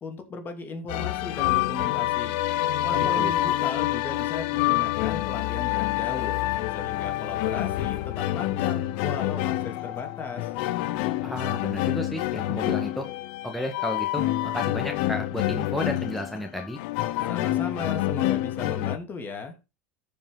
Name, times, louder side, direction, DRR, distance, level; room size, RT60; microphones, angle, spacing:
voice 1, 0.0-2.4 2.8-6.4 6.7-10.5 17.3-19.5, left 4 dB, 30° left, 5 dB, 2.5 m, -36 dB
sound 1, 0.9-19.0, left 15 dB, 70° left, 0.6 m, -27 dB
voice 2, 2.9-3.3 11.2-13.1 13.4-16.8, left 1 dB, ahead, 2 dB, 1.8 m, -33 dB
sound 2, 6.4-10.6, left 9 dB, 50° left, 2.2 m, -43 dB
14.0 x 5.2 x 3.9 m, 0.27 s
hypercardioid pair, 100°, 6 cm